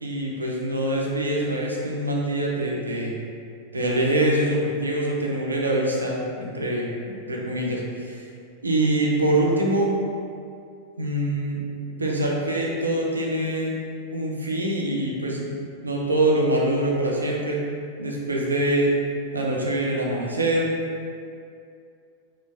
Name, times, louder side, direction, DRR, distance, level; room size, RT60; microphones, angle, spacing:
voice 1, 0.0-3.1 3.7-8.2 8.6-9.9 11.0-11.6 12.0-13.7 14.1-15.5 15.8-17.6 18.0-18.9 19.3-20.7, right 1 dB, 80° right, -3 dB, 0.4 m, -24 dB
2.9 x 2.2 x 2.3 m, 2.4 s
figure-of-eight pair, 90°, 0 cm